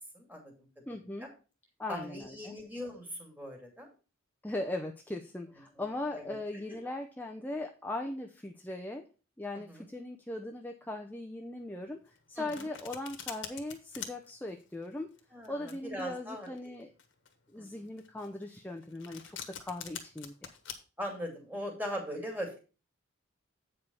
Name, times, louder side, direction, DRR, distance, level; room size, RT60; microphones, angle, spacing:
voice 1, 0.1-0.7 1.2-1.3 1.9-3.9 5.8-6.4 9.7-9.9 12.4-12.7 15.3-16.5 17.6-17.7 21.0-22.6, equal, 10° right, 1 dB, 2.4 m, -40 dB
voice 2, 0.9-1.3 1.8-2.6 4.4-9.0 9.4-15.1 15.5-16.9 17.5-20.6, left 2 dB, 10° left, 3 dB, 0.6 m, -39 dB
Domestic sounds home sounds, 12.0-20.7, left 9 dB, 65° left, 1.4 m, -45 dB
8.5 x 5.0 x 5.3 m, 0.34 s
head